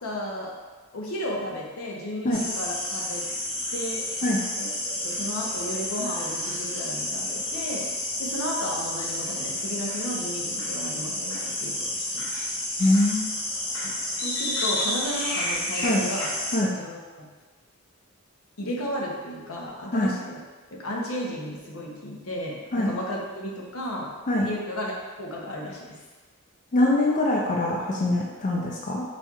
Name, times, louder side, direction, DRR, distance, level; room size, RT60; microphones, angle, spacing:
voice 1, 0.0-0.5 0.9-3.3 3.7-4.2 4.6-7.8 8.2-12.3 13.8-16.3 16.7-17.3 18.6-20.4 20.7-24.1 24.4-24.9 25.2-26.0, equal, 80° left, -2 dB, 0.8 m, -34 dB
sound 1, 2.3-16.6, left 1 dB, 60° left, 1.1 m, -30 dB
voice 2, 12.8-13.3 15.8-16.0 16.5-16.7 19.9-20.1 22.7-22.9 24.3-24.5 26.7-29.0, left 1 dB, 35° left, -2 dB, 0.4 m, -23 dB
4.3 x 4.2 x 2.4 m, 1.4 s
head